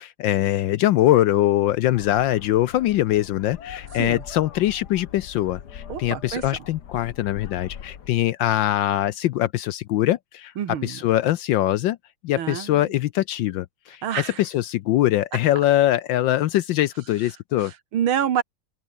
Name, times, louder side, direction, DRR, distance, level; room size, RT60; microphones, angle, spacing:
voice 1, 0.0-10.5 10.8-12.0 12.2-17.7, left 14 dB, 75° left, 1.2 m, -22 dB
sound 1, 1.9-8.1, left 8 dB, 55° left, 1.8 m, -41 dB
voice 2, 5.9-6.5 10.6-11.0 12.4-12.9 14.0-14.4 17.6-18.4, right 9 dB, 80° right, 2.2 m, -27 dB
omnidirectional pair, 2.3 m